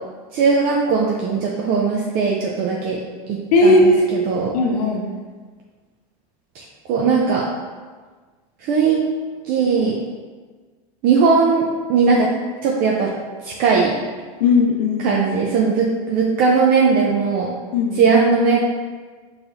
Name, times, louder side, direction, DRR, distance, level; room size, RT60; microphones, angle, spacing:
voice 1, 0.3-3.0 3.3-4.5 6.5-7.5 8.6-9.0 9.4-9.9 11.0-12.3 12.6-13.1 13.4-14.0 15.0-17.5 17.9-18.6, right 5 dB, 50° right, -2 dB, 0.5 m, -18 dB
voice 2, 3.5-4.1 4.5-5.0 14.4-15.2 17.7-18.0, left 2 dB, 80° left, 1 dB, 0.6 m, -16 dB
4.6 x 3.2 x 2.6 m, 1.4 s
supercardioid pair, 105°, 20 cm